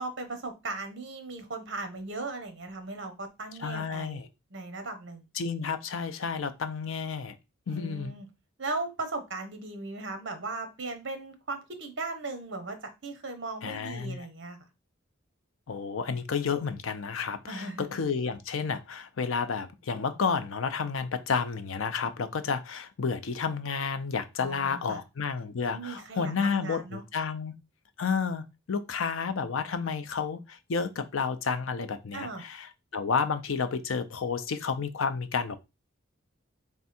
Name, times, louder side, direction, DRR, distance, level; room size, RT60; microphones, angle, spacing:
voice 1, 0.0-4.2 4.5-5.3 7.7-8.3 8.6-14.6 17.5-17.9 24.4-25.0 25.7-27.0 32.1-32.4, right 3 dB, 60° right, 0.9 m, -37 dB
voice 2, 3.6-4.3 5.3-7.4 7.7-8.1 13.6-14.3 15.7-27.5 28.0-35.6, left 5 dB, 80° left, 0.5 m, -31 dB
3.5 x 3.4 x 4.3 m
head